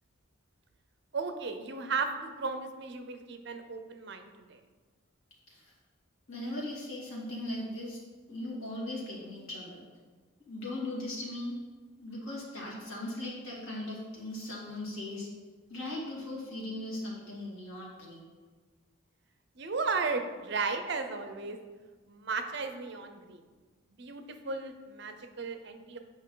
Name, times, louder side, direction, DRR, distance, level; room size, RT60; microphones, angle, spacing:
voice 1, 1.1-4.6 19.6-21.6 22.1-23.4 24.0-26.0, right 4 dB, 55° right, 7 dB, 0.6 m, -35 dB
voice 2, 6.3-8.0 8.3-9.8 10.5-11.6 12.0-15.3 15.7-18.2, left 1 dB, 85° left, -4 dB, 2.2 m, -38 dB
8.0 x 5.2 x 3.8 m, 1.4 s
head